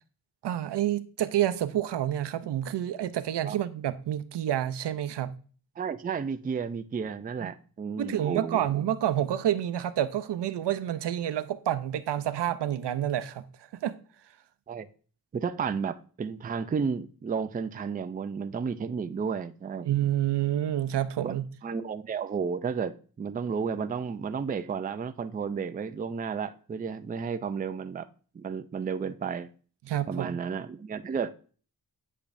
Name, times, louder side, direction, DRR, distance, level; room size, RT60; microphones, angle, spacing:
voice 1, 0.4-5.3 7.4-7.5 8.0-13.4 13.8-14.0 19.8-21.4 29.8-30.3, right 11 dB, 85° right, 0.6 m, -28 dB
voice 2, 5.8-8.6 14.7-14.9 15.3-19.9 21.2-21.3 21.6-28.1 28.3-29.5 30.1-31.3, right 6 dB, 25° right, 0.3 m, -32 dB
8.4 x 5.1 x 2.6 m
wide cardioid pair, 120°, 40 cm